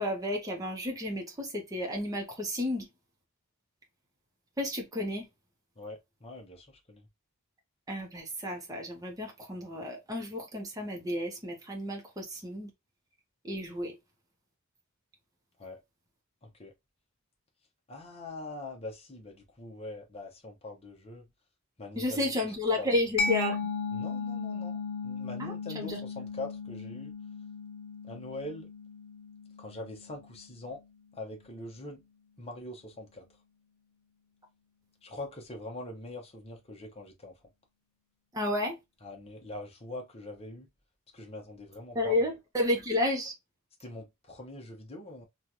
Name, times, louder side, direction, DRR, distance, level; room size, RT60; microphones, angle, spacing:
voice 1, 0.0-2.9 4.6-5.3 7.9-12.7 13.4-13.9 22.0-23.7 25.4-26.0 38.3-38.8 41.9-43.3, left 1 dB, 15° right, 0.8 m, -32 dB
voice 2, 5.8-7.1 15.6-15.8 16.4-16.7 17.9-21.3 21.8-22.3 22.8-22.9 23.9-27.1 28.0-28.7 29.6-30.8 31.1-32.0 32.4-33.2 35.0-37.3 39.0-40.7 41.1-42.2 43.8-45.2, left 2 dB, 25° left, 0.8 m, -43 dB
Mallet percussion, 23.2-30.6, left 4 dB, 65° left, 0.5 m, -36 dB
3.1 x 2.3 x 2.6 m
head